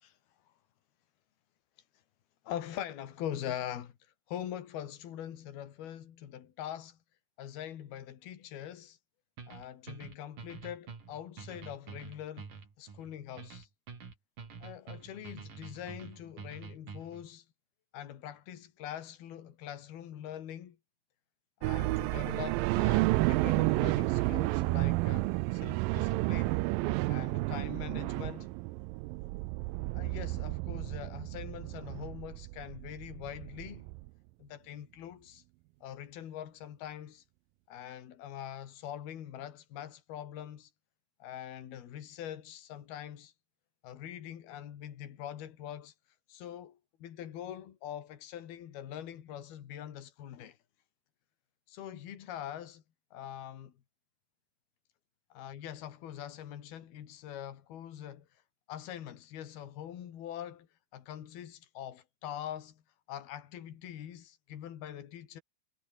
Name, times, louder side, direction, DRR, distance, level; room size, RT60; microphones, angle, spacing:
voice 1, 2.5-3.9 4.3-7.0 7.4-9.0 9.5-12.5 12.8-13.7 14.6-17.5 17.9-20.8 21.6-26.6 27.1-28.5 29.9-33.9 34.4-35.4 35.8-37.2 37.7-40.7 41.2-43.3 43.8-45.9 46.3-50.6 51.7-52.8 53.1-53.7 55.4-58.3 58.7-60.7 60.9-62.8 63.1-65.4, left 10 dB, 80° left, 4.1 m, -43 dB
sound 1, 9.4-17.3, right 5 dB, 60° right, 6.1 m, -47 dB
sound 2, 21.6-34.1, right 22 dB, 80° right, 2.1 m, -31 dB
omnidirectional pair, 4.4 m